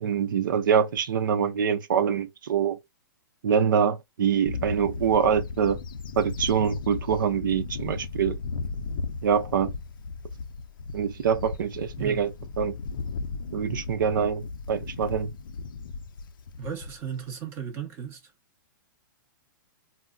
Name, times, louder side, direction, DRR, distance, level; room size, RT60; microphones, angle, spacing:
voice 1, 0.0-2.8 3.4-5.8 6.2-8.4 9.2-9.7 10.9-12.3 12.6-12.7 13.5-15.3, right 7 dB, 70° right, 0.6 m, -25 dB
Bird / Wind, 4.5-17.2, left 4 dB, 80° left, 0.4 m, -36 dB
voice 2, 16.6-18.2, right 8 dB, 20° right, 0.8 m, -35 dB
3.6 x 2.0 x 2.2 m
hypercardioid pair, 165°, 11 cm